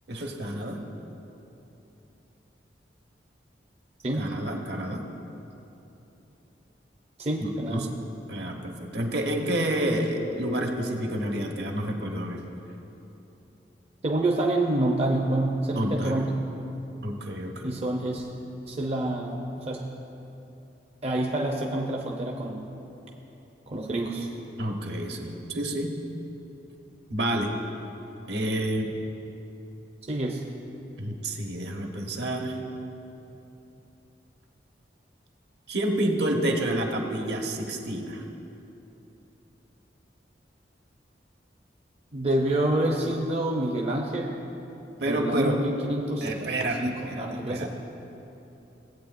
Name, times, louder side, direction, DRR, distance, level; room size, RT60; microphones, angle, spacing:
voice 1, 0.1-0.8 4.1-5.1 7.4-7.9 8.3-12.4 15.8-16.2 17.0-17.8 24.6-26.0 27.1-27.5 28.3-28.9 31.0-32.6 35.7-38.2 45.0-45.6 46.2-47.7, right 1 dB, 65° right, 2 dB, 1.1 m, -29 dB
voice 2, 7.2-7.9 14.0-16.3 17.6-18.3 18.7-19.9 21.0-22.6 23.7-24.3 30.1-30.4 42.1-44.4 45.0-47.7, right 1 dB, 35° right, 0 dB, 0.6 m, -27 dB
17.5 x 8.2 x 2.5 m, 3.0 s
head